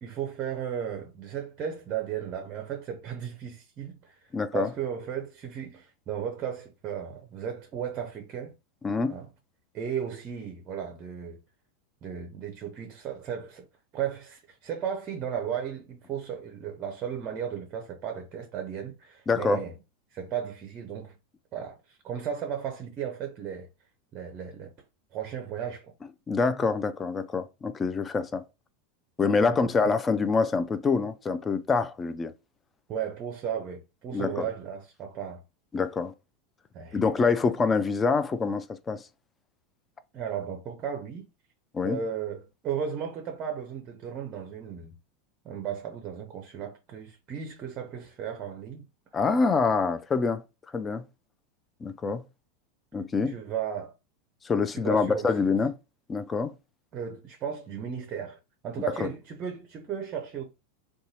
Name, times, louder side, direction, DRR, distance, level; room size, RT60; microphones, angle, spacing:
voice 1, 0.0-8.5 9.1-9.3 9.7-11.4 12.0-13.7 13.9-19.7 20.1-21.2 21.5-23.7 24.1-24.7 25.1-25.9 32.9-35.4 36.7-37.0 40.1-41.3 41.8-45.0 45.4-48.8 53.3-53.9 54.7-55.3 56.9-60.4, right 8 dB, 35° right, 0.5 m, -35 dB
voice 2, 4.3-4.7 8.8-9.2 19.3-19.6 26.3-28.4 29.2-32.3 34.1-34.5 35.7-36.1 36.9-39.0 41.7-42.0 49.1-50.4 50.7-51.0 51.8-52.2 52.9-53.3 54.4-55.8 56.1-56.5 59.0-59.1, left 4 dB, 20° left, 0.3 m, -26 dB
2.6 x 2.2 x 2.9 m
figure-of-eight pair, 85°, 0 cm